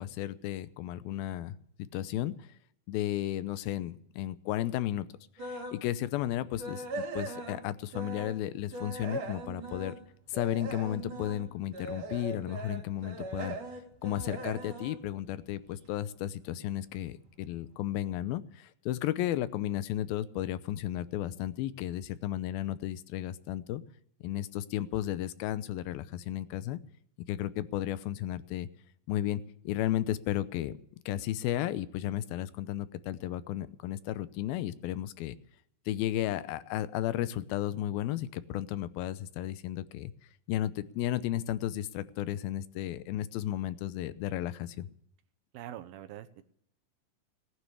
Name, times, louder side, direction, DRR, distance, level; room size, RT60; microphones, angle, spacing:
voice 1, 0.0-2.5 2.9-5.1 5.4-6.9 7.1-10.0 10.3-13.6 14.0-23.8 24.2-26.8 27.3-28.7 29.1-30.8 31.1-35.4 35.9-40.1 40.5-44.9, left 13 dB, 90° left, 15 dB, 2.6 m, -34 dB
sound 1, 5.4-5.8 6.2-8.4 8.7-15.9 16.3-16.6 17.0-17.1 17.5-17.6, right 2 dB, 60° right, 4.3 m, -40 dB
voice 2, 45.5-46.4, right 12 dB, 85° right, 9 dB, 2.8 m, -44 dB
18.0 x 9.7 x 6.8 m, 0.70 s
omnidirectional pair, 4.2 m